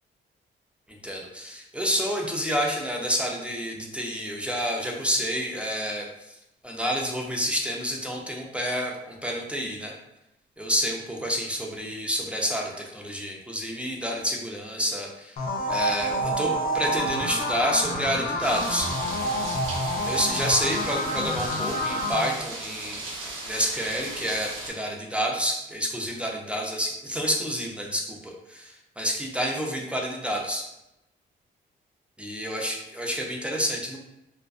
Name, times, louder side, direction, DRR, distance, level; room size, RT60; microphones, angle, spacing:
voice 1, 0.9-6.4 6.6-9.9 10.6-15.4 15.7-18.9 20.1-30.7 32.2-34.0, equal, 5° right, -1 dB, 0.4 m, -29 dB
sound 1, 15.4-22.2, equal, 50° left, 0.5 m, -28 dB
sound 2, 18.4-24.7, right 2 dB, 85° right, 0.7 m, -37 dB
2.4 x 2.2 x 2.3 m, 0.89 s
cardioid pair, 90°, 20 cm